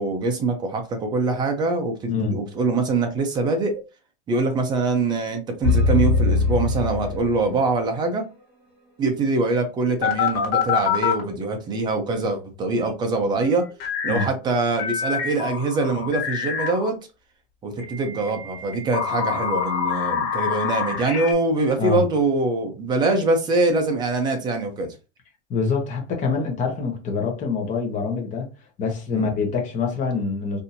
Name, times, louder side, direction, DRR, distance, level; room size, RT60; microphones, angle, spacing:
voice 1, 0.0-3.7 4.3-8.2 9.0-13.6 14.0-16.9 17.6-24.9 29.1-29.3, right 3 dB, 15° right, 0.4 m, -23 dB
voice 2, 2.1-2.4 14.1-14.3 21.8-22.0 25.5-28.5 28.8-30.6, left 5 dB, 20° left, 0.9 m, -25 dB
sound 1, 5.6-7.7, left 3 dB, 5° left, 1.5 m, -21 dB
sound 2, 10.0-11.2 13.8-14.3 14.8-16.9 17.8-21.3, left 8 dB, 55° left, 1.5 m, -26 dB
4.2 x 2.6 x 2.6 m
supercardioid pair, 165°, 34 cm